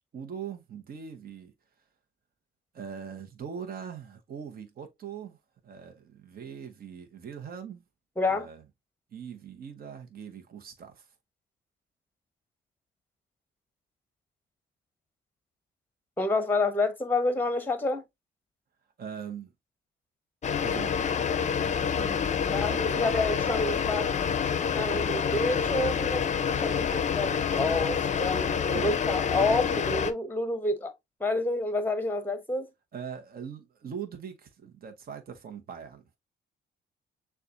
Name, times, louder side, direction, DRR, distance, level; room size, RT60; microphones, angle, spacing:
voice 1, 0.1-1.5 2.7-5.4 5.6-7.8 8.3-8.6 9.1-11.1 19.0-19.5 20.6-21.2 22.0-23.1 28.7-29.0 32.9-36.0, right 7 dB, 50° right, 1.0 m, -41 dB
voice 2, 8.2-8.5 16.2-18.0 22.5-24.1 24.7-30.9 31.2-32.7, left 2 dB, 10° left, 1.0 m, -29 dB
sound 1, 20.4-30.1, left 7 dB, 35° left, 0.5 m, -27 dB
6.5 x 2.4 x 2.5 m
cardioid pair, 90°, 20 cm